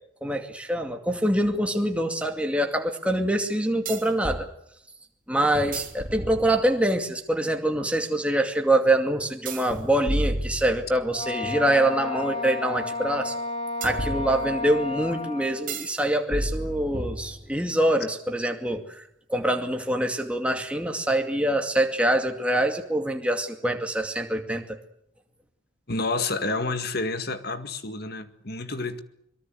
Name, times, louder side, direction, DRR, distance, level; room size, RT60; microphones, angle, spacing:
voice 1, 0.2-4.5 5.3-13.3 13.8-19.0 19.3-24.6, right 1 dB, 5° right, 2.4 m, -25 dB
sound 1, 1.4-1.5 3.9-4.5 5.5-6.9 9.5-11.2 13.8-14.8 15.7-16.0 16.3-17.7, right 1 dB, 40° right, 3.0 m, -32 dB
Wind instrument woodwind instrument, 11.1-15.7, left 4 dB, 30° left, 5.8 m, -32 dB
voice 2, 25.9-29.0, left 3 dB, 50° left, 1.9 m, -29 dB
24.0 x 23.0 x 7.9 m
head